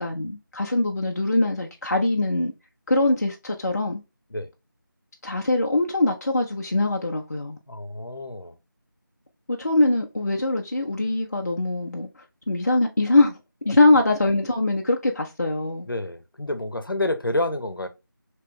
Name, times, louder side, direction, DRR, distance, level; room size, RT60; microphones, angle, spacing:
voice 1, 0.0-2.5 2.9-4.0 5.2-7.6 9.5-13.4 13.7-15.9, left 2 dB, 50° left, 0.5 m, -22 dB
voice 2, 7.7-8.6 15.8-17.9, left 1 dB, 80° left, 0.7 m, -28 dB
3.2 x 2.9 x 3.4 m
figure-of-eight pair, 170°, 11 cm